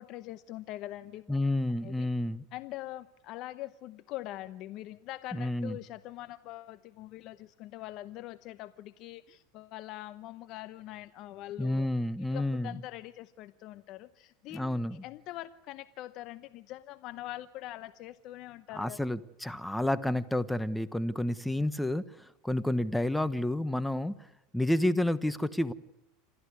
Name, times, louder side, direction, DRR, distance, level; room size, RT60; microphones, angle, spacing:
voice 1, 0.0-1.4 1.8-2.1 2.5-11.9 12.3-19.0, left 15 dB, 55° left, 14 dB, 0.9 m, -43 dB
voice 2, 1.3-2.4 5.3-5.8 11.6-12.8 14.5-15.0 18.7-24.1 24.5-25.7, left 1 dB, 5° left, 14 dB, 1.1 m, -30 dB
27.5 x 14.0 x 9.7 m, 0.92 s
hypercardioid pair, 105°, 0 cm